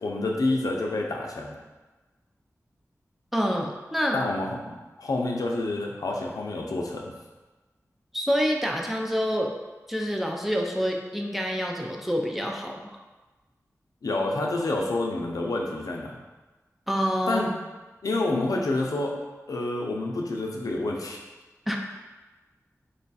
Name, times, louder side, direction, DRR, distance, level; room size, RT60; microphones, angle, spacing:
voice 1, 0.0-1.5 4.1-7.0 14.0-16.1 17.3-17.5 18.0-19.1 19.5-21.2, left 2 dB, 85° left, 0 dB, 0.5 m, -28 dB
voice 2, 3.3-4.2 8.1-9.5 9.9-12.8 16.9-17.4 21.7-21.8, equal, 5° right, 1 dB, 0.4 m, -27 dB
3.1 x 2.3 x 4.0 m, 1.2 s
wide cardioid pair, 70°, 6 cm